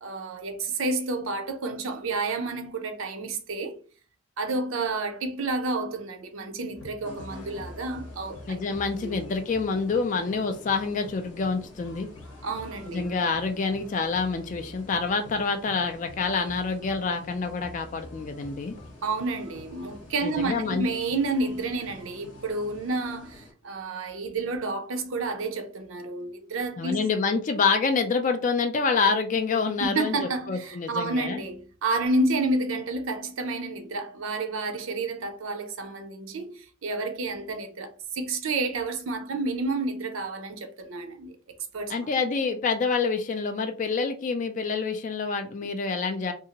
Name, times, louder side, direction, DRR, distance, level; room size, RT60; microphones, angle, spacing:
voice 1, 0.0-3.8 4.4-8.6 9.0-9.1 12.4-13.1 19.0-27.1 29.8-41.4 41.7-42.1, right 2 dB, 75° right, 0.5 m, -30 dB
sound 1, 6.7-22.8, left 2 dB, 80° left, 0.8 m, -48 dB
sound 2, 7.0-23.5, left 1 dB, 60° left, 1.1 m, -50 dB
voice 2, 8.5-12.1 12.9-18.7 20.2-20.9 26.8-31.4 41.9-46.3, left 4 dB, 40° left, 0.3 m, -27 dB
2.6 x 2.4 x 2.8 m
head